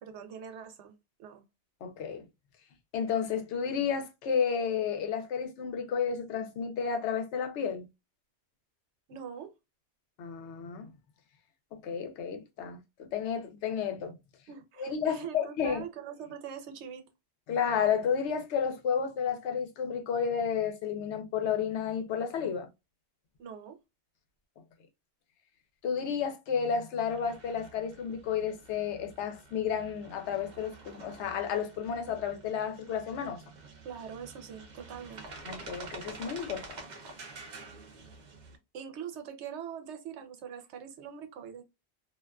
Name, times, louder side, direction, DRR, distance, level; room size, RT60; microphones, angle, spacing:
voice 1, 0.0-1.4 9.1-9.5 14.5-17.0 23.4-23.8 33.8-35.2 38.7-41.6, right 8 dB, 90° right, 0.9 m, -43 dB
voice 2, 1.8-2.2 2.9-7.9 10.2-10.9 11.7-14.2 14.8-15.8 17.5-22.7 25.8-33.4 35.4-36.8, left 7 dB, 90° left, 0.9 m, -32 dB
sound 1, 27.1-38.6, right 3 dB, 50° right, 0.6 m, -48 dB
2.4 x 2.2 x 2.3 m
omnidirectional pair, 1.1 m